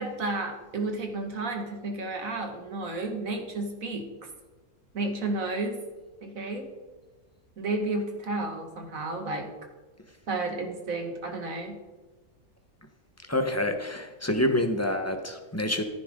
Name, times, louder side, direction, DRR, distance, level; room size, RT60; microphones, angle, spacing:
voice 1, 0.0-4.1 4.9-5.8 6.2-6.7 7.6-9.5 10.3-11.8, right 2 dB, 60° right, 3 dB, 2.2 m, -32 dB
voice 2, 13.3-15.8, left 1 dB, 10° left, 5 dB, 1.0 m, -27 dB
14.5 x 10.5 x 3.8 m, 1.2 s
omnidirectional pair, 1.6 m